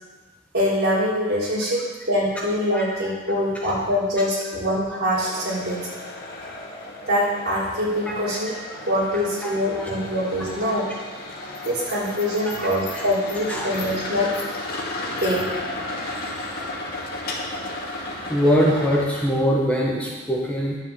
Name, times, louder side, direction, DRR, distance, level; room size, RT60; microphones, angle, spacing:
voice 1, 0.5-1.8 2.1-5.9 7.1-8.5 8.9-10.9 11.6-14.3 15.2-15.6, equal, 55° right, -6 dB, 4.0 m, -24 dB
sound 1, 5.1-19.5, left 2 dB, 50° left, 2.1 m, -34 dB
voice 2, 9.4-9.9 12.9-13.0 13.5-13.7 18.3-20.8, equal, 5° left, -4 dB, 1.4 m, -22 dB
11.0 x 7.0 x 7.1 m, 1.3 s
head